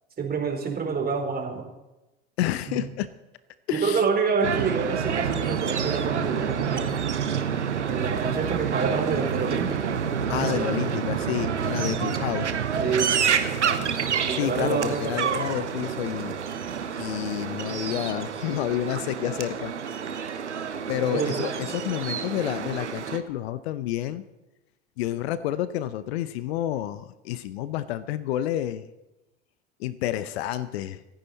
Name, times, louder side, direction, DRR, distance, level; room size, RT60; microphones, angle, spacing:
voice 1, 0.2-1.7 2.7-2.9 3.7-7.0 7.9-10.9 12.8-15.4 21.0-21.5, right 5 dB, 25° right, 2 dB, 4.0 m, -28 dB
voice 2, 2.4-3.1 3.7-4.0 10.3-12.5 14.4-16.4 17.0-19.7 20.9-24.2 25.0-28.9 29.8-31.0, left 12 dB, 65° left, 15 dB, 0.9 m, -29 dB
sound 1, 4.4-23.2, right 7 dB, 85° right, 1.2 m, -28 dB
26.5 x 9.9 x 4.2 m, 0.99 s
hypercardioid pair, 80°, 34 cm